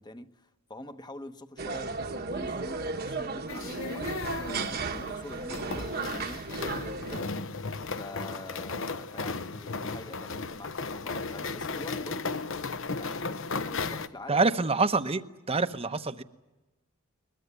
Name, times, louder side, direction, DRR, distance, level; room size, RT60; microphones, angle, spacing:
voice 1, 0.0-7.4 8.0-12.4 12.9-14.5, left 1 dB, 20° left, 1.0 m, -45 dB
sound 1, 1.6-7.2, right 3 dB, 45° right, 1.2 m, -35 dB
sound 2, 3.5-14.1, left 4 dB, 60° left, 1.0 m, -35 dB
voice 2, 14.3-15.2 15.5-16.2, right 3 dB, 25° right, 0.9 m, -26 dB
22.0 x 21.5 x 9.6 m
head